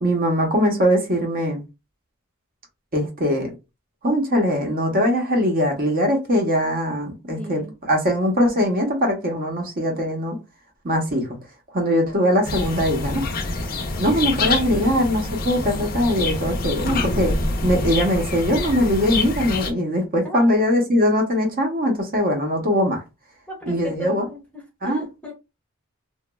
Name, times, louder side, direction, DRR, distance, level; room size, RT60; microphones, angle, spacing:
voice 1, 0.0-1.6 2.9-3.5 4.0-10.4 10.8-11.3 11.7-13.3 14.0-17.3 17.6-23.0 23.7-24.3 24.8-25.0, equal, 45° right, 0.8 m, -21 dB
voice 2, 7.4-7.7 13.9-14.0 20.2-20.6 23.5-25.3, left 1 dB, 5° left, 0.7 m, -37 dB
sound 1, 12.4-19.7, left 2 dB, 45° left, 0.6 m, -26 dB
2.9 x 2.3 x 2.2 m
head